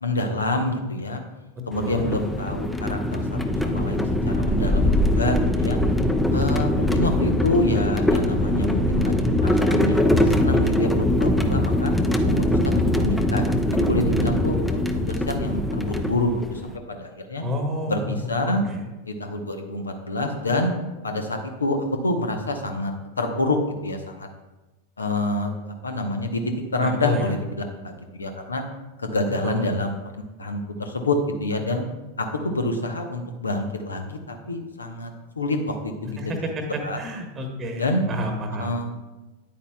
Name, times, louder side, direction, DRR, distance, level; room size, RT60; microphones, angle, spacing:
voice 1, 0.0-1.2 1.7-5.8 6.3-11.9 12.3-13.5 13.7-14.8 15.1-17.4 17.9-18.6 19.0-20.8 21.0-21.8 22.0-23.6 23.8-24.3 25.0-25.6 25.8-27.4 27.8-28.6 29.0-31.8 32.2-35.1 35.4-36.2 36.8-37.0 37.8-38.0 38.6-38.9, left 2 dB, 75° left, 5 dB, 0.9 m, -27 dB
sound 1, 1.7-16.7, left 1 dB, 5° left, 0.5 m, -22 dB
voice 2, 1.7-2.1 17.4-18.8 26.8-27.3 29.4-29.7 36.2-38.7, equal, 20° right, 4 dB, 1.1 m, -30 dB
Thump thud, 7.1-7.5 8.8-9.1 10.5-10.8 12.2-12.6 13.9-14.5, right 3 dB, 45° right, 0.5 m, -32 dB
9.5 x 8.3 x 2.3 m, 1.1 s
figure-of-eight pair, 90°, 0 cm